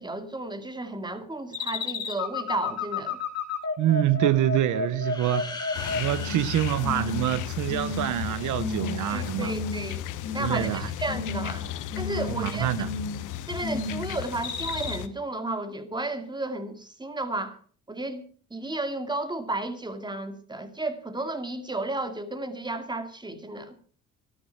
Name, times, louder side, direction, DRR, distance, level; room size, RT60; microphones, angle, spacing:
voice 1, 0.0-3.2 9.1-10.1 10.3-11.7 12.0-12.7 13.5-17.6 17.9-23.7, right 2 dB, 15° right, 2.3 m, -33 dB
sound 1, 1.5-6.5 6.8-7.3 7.7-8.2 8.6-9.0 9.4-9.9 10.2-10.8 11.1-11.6 11.9-12.4 12.7-13.2 13.6-14.1 14.4-14.9, left 4 dB, 55° left, 4.2 m, -32 dB
voice 2, 3.8-9.5 10.4-10.9 12.3-12.9, right 12 dB, 80° right, 0.9 m, -26 dB
sound 2, 5.0-7.9, left 2 dB, 15° left, 4.5 m, -40 dB
sound 3, 5.7-15.1, left 11 dB, 85° left, 1.1 m, -35 dB
14.0 x 12.5 x 5.7 m
cardioid pair, 90°, 30 cm